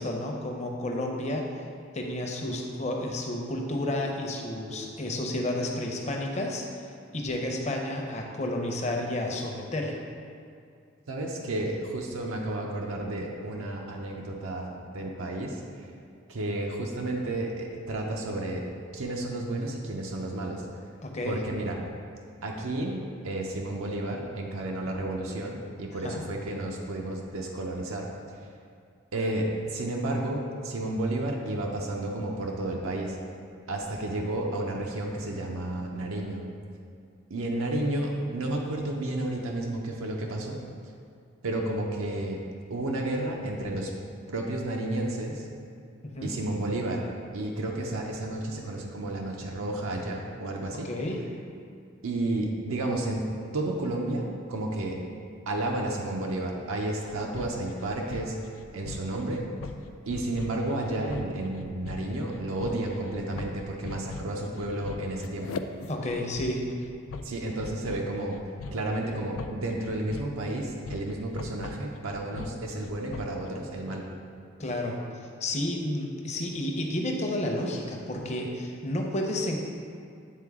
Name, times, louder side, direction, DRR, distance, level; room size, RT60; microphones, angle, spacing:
voice 1, 0.0-1.4 1.9-6.6 7.1-10.0 21.0-21.4 26.0-26.2 46.1-46.3 50.8-51.2 65.9-66.6 74.6-75.0 75.4-79.6, left 1 dB, 35° left, 1 dB, 0.7 m, -31 dB
voice 2, 11.1-15.9 16.3-18.7 18.9-20.7 21.2-21.8 22.4-28.4 29.1-33.2 33.7-36.4 37.3-40.6 41.4-42.4 42.7-43.9 44.3-45.5 46.2-47.1 47.3-50.9 52.0-53.3 53.5-55.0 55.5-59.5 60.1-65.6 67.2-68.4 68.7-74.1, right 1 dB, 90° right, 0 dB, 0.6 m, -32 dB
sound 1, 57.1-73.5, left 4 dB, 80° left, 0.3 m, -41 dB
8.5 x 3.8 x 3.6 m, 2.3 s
head